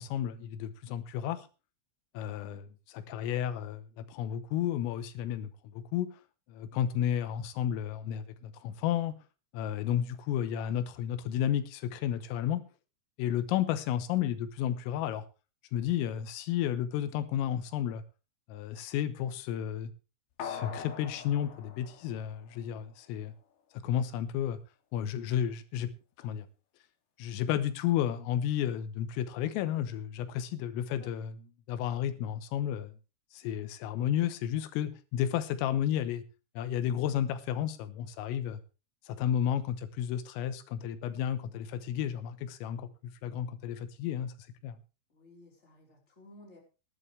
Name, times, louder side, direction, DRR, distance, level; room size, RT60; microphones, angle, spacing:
voice 1, 0.0-1.5 2.2-6.1 6.5-9.1 9.5-12.6 13.2-15.3 15.7-18.0 18.5-19.9 20.4-23.3 23.7-24.6 24.9-25.9 26.2-26.5 27.2-31.4 31.7-32.9 33.3-36.2 36.6-38.6 39.1-44.3 44.6-44.8, left 10 dB, 85° left, 12 dB, 3.6 m, -32 dB
sound 1, 20.4-23.0 23.3-23.4, left 7 dB, 60° left, 3.1 m, -43 dB
voice 2, 30.7-31.1 45.1-46.6, left 2 dB, 15° left, 0 dB, 3.6 m, -56 dB
18.5 x 11.0 x 3.3 m, 0.33 s
omnidirectional pair, 5.8 m